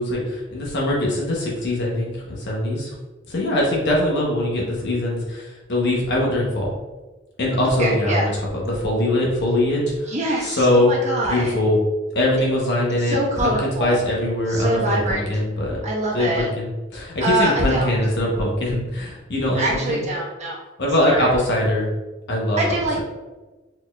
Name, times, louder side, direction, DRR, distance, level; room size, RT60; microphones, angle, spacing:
voice 1, 0.0-2.9 3.3-6.7 7.4-10.9 11.2-11.7 12.1-15.8 16.1-20.0 20.8-21.9 22.3-23.0, left 1 dB, 55° left, -3 dB, 0.9 m, -22 dB
voice 2, 7.8-8.3 10.1-11.5 13.0-14.1 14.5-15.3 15.8-16.5 17.2-17.9 19.5-20.6 21.0-21.3 22.6-23.0, right 1 dB, 35° right, -5 dB, 1.2 m, -24 dB
4.4 x 4.2 x 2.3 m, 1.2 s
head